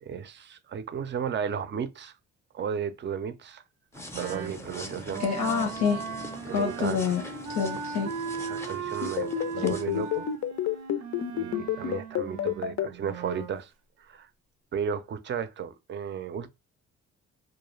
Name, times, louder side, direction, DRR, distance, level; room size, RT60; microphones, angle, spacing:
voice 1, 0.0-2.1 2.5-3.6 4.2-5.2 6.4-7.0 8.4-10.3 11.3-13.7 14.0-14.3 14.7-16.5, right 7 dB, 40° right, 0.4 m, -34 dB
sound 1, 3.9-10.4, left 1 dB, 10° left, 0.5 m, -43 dB
Wind instrument woodwind instrument, 4.1-13.6, right 6 dB, 90° right, 0.5 m, -38 dB
voice 2, 5.2-6.0 6.5-7.2 7.5-8.1 9.6-10.1, left 6 dB, 85° left, 0.8 m, -27 dB
sound 2, 9.0-12.9, left 12 dB, 60° left, 0.5 m, -28 dB
2.3 x 2.1 x 3.1 m
cardioid pair, 90°, 30 cm